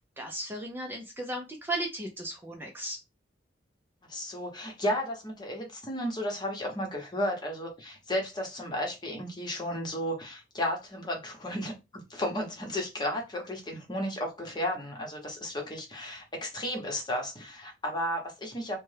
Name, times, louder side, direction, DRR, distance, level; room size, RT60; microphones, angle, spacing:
voice 1, 0.2-3.0, right 1 dB, 10° right, 0.5 m, -35 dB
voice 2, 4.1-18.8, left 1 dB, 25° left, 1.0 m, -33 dB
3.3 x 2.2 x 3.3 m
head